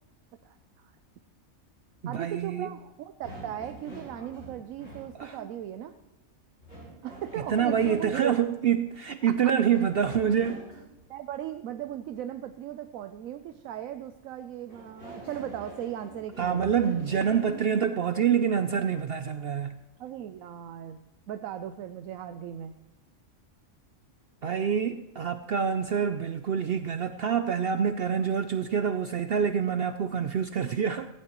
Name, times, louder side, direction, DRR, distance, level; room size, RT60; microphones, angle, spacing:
voice 1, 0.4-0.9 2.1-5.9 7.0-8.4 9.3-9.4 11.1-16.6 20.0-22.8 28.7-28.8, right 11 dB, 80° right, 1.0 m, -37 dB
voice 2, 2.0-2.7 5.2-5.4 7.5-10.6 16.4-19.8 24.4-31.1, right 7 dB, 60° right, 0.6 m, -26 dB
sound 1, 3.2-5.1 6.6-8.3 9.7-11.0 14.7-17.9, right 1 dB, 45° left, 6.4 m, -45 dB
17.0 x 15.0 x 3.0 m
omnidirectional pair, 1.4 m